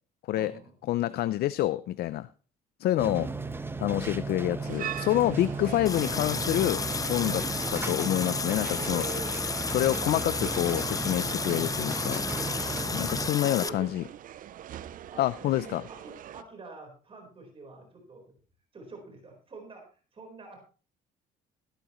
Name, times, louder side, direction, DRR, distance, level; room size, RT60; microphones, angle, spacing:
voice 1, 0.3-0.7 3.0-3.3 7.2-7.6 8.7-9.3 12.5-14.1 14.7-18.3 18.7-20.6, right 3 dB, 35° right, 3 dB, 4.4 m, -46 dB
voice 2, 0.9-2.3 2.8-3.3 3.8-6.8 7.1-7.4 7.9-9.0 9.7-12.2 12.9-14.0 15.2-15.8, left 14 dB, 70° left, 16 dB, 0.6 m, -27 dB
sound 1, 3.0-13.3, right 3 dB, 15° right, 0.9 m, -35 dB
sound 2, 4.6-16.4, right 11 dB, 55° right, 0.6 m, -43 dB
Water tap faucet, 5.9-13.7, left 5 dB, 20° left, 0.6 m, -33 dB
15.5 x 12.0 x 3.1 m, 0.36 s
cardioid pair, 110°, 17 cm